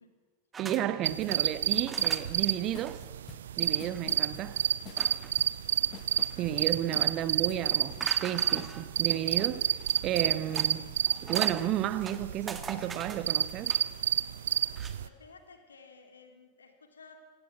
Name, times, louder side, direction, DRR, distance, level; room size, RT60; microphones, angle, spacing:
sound 1, 0.5-1.4 1.9-2.5 2.9-3.0 3.3-3.4 3.7-4.0 5.0-5.4 5.9-6.6 8.0-8.9 9.8-10.7 11.1-11.6 12.0-13.9 14.7-15.0, right 5 dB, 20° right, 1.9 m, -42 dB
voice 1, 0.6-3.0 3.6-4.6 6.4-9.8 10.0-10.9 11.2-13.7, right 12 dB, 35° right, 1.1 m, -32 dB
sound 2, 1.0-15.1, right 10 dB, 60° right, 0.6 m, -30 dB
sound 3, 1.2-1.3 1.6-7.6 7.9-9.6, left 12 dB, 35° left, 0.9 m, -50 dB
voice 2, 6.3-7.2 7.4-7.7 15.0-17.2, left 4 dB, 70° left, 3.3 m, -55 dB
26.5 x 17.5 x 7.4 m
figure-of-eight pair, 90°, 0 cm